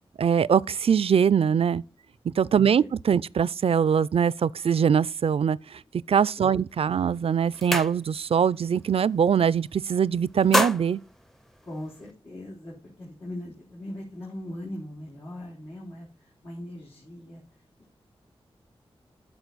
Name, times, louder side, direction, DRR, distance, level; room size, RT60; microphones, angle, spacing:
voice 1, 0.2-1.8 2.4-5.8 6.1-11.0, right 7 dB, 70° right, 0.3 m, -22 dB
voice 2, 2.5-3.2 6.4-6.5 11.6-17.6, left 1 dB, 85° left, 3.5 m, -40 dB
sound 1, 6.7-6.9 7.3-8.4 8.8-9.0 9.3-9.9 10.2-12.1, equal, 5° left, 0.5 m, -29 dB
10.5 x 6.4 x 4.0 m
cardioid pair, 60°, 10 cm